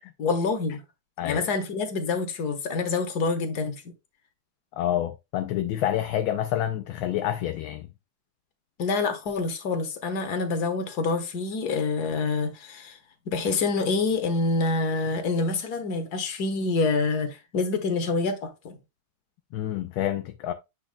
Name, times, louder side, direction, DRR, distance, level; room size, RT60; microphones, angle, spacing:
voice 1, 0.2-0.8 1.2-3.8 8.8-13.0 13.3-18.8, left 3 dB, 50° left, 1.6 m, -27 dB
voice 2, 4.7-7.9 19.5-20.5, left 11 dB, 75° left, 1.3 m, -28 dB
8.3 x 6.3 x 2.3 m
omnidirectional pair, 2.4 m